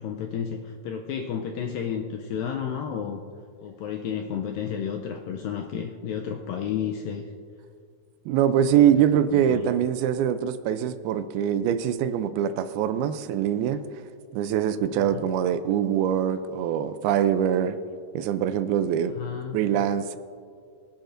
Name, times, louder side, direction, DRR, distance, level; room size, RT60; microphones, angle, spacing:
voice 1, 0.0-3.2 3.6-7.3 8.9-9.0 9.3-9.7 15.0-15.2 19.1-19.7, left 8 dB, 80° left, 3 dB, 2.1 m, -32 dB
voice 2, 8.3-13.8 14.3-17.8 18.1-19.1 19.5-20.2, right 9 dB, 80° right, 11 dB, 2.4 m, -23 dB
24.0 x 10.5 x 2.6 m, 2.2 s
omnidirectional pair, 4.6 m